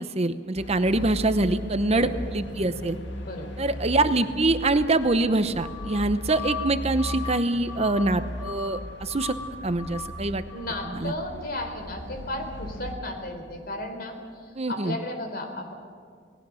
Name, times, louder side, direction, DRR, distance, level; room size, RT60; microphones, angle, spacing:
voice 1, 0.0-3.0 3.6-9.3 9.6-10.4 10.9-11.1 14.5-15.0, right 2 dB, 35° right, 10 dB, 0.8 m, -24 dB
sound 1, 0.6-13.0, left 2 dB, 70° left, 2.1 m, -36 dB
voice 2, 1.9-2.2 3.2-3.6 10.5-15.7, left 1 dB, 55° left, 5 dB, 4.1 m, -34 dB
28.5 x 19.5 x 6.4 m, 2.1 s
head